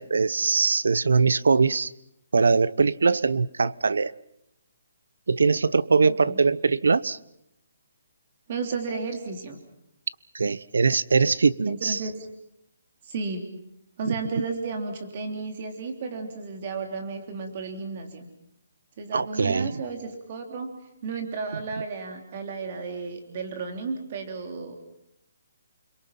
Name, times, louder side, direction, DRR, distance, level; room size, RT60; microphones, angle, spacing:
voice 1, 0.0-1.9 2.3-4.1 5.3-7.2 10.3-12.0 14.1-14.2 19.1-19.8, right 4 dB, 90° right, 0.8 m, -22 dB
voice 2, 6.0-6.4 8.5-9.6 11.7-12.1 13.0-13.5 14.0-18.3 19.0-20.7 21.0-24.8, right 4 dB, 30° right, 3.2 m, -33 dB
29.5 x 22.5 x 5.9 m
hypercardioid pair, 175°, 0 cm